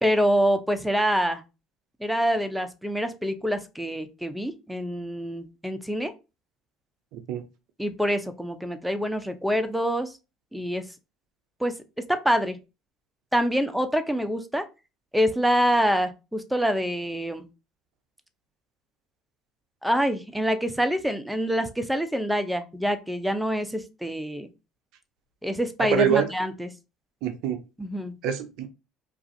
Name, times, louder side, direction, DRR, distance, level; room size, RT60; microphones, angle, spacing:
voice 1, 0.0-1.4 2.0-6.1 7.8-10.1 10.5-10.9 11.6-11.7 12.1-12.6 13.3-14.6 15.1-17.5 19.8-24.5 25.4-26.7 27.8-28.1, equal, ahead, 0.4 m, -26 dB
voice 2, 7.1-7.4 25.8-26.3 27.2-27.6 28.2-28.7, right 9 dB, 70° right, 0.4 m, -25 dB
2.4 x 2.3 x 2.6 m
supercardioid pair, 75°, 0 cm